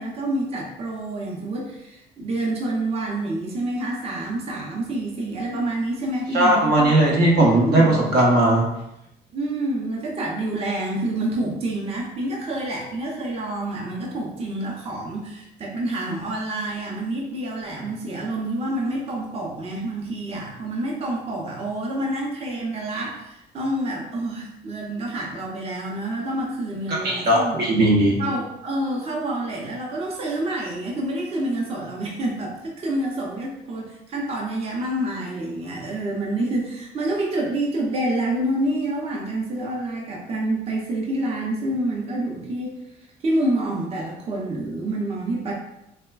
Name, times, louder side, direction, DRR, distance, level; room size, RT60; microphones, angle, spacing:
voice 1, 0.0-6.9 7.4-8.0 9.3-27.7 28.2-42.7 43.2-45.5, right 1 dB, 35° right, -2 dB, 0.5 m, -28 dB
voice 2, 6.3-8.7 26.9-28.2, right 1 dB, 75° right, -2 dB, 0.7 m, -18 dB
3.2 x 2.1 x 2.2 m, 0.85 s
cardioid pair, 110°, 17 cm